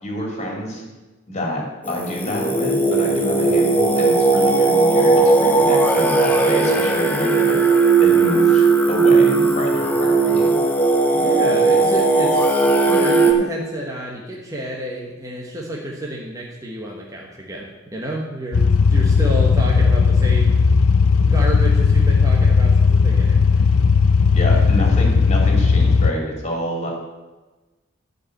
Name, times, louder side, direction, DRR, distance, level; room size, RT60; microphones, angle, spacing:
voice 1, 0.0-0.8 1.3-7.6 8.0-10.5 24.2-26.9, equal, 30° left, -1 dB, 2.7 m, -27 dB
Singing, 1.9-13.3, right 3 dB, 5° left, 0.9 m, -17 dB
voice 2, 11.1-20.6 21.2-23.6, right 1 dB, 15° right, -2 dB, 1.3 m, -30 dB
sound 1, 18.5-26.1, left 5 dB, 90° left, 0.6 m, -15 dB
12.0 x 5.2 x 7.8 m, 1.2 s
head